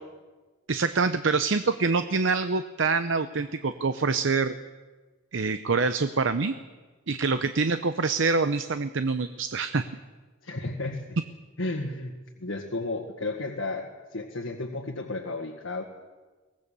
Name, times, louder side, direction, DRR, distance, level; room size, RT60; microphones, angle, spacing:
voice 1, 0.7-4.5 5.3-6.5 7.1-9.8, right 4 dB, 70° right, 11 dB, 0.7 m, -25 dB
voice 2, 10.4-11.0 11.6-15.8, left 2 dB, 85° left, 1 dB, 1.9 m, -33 dB
23.0 x 18.5 x 7.0 m, 1.3 s
head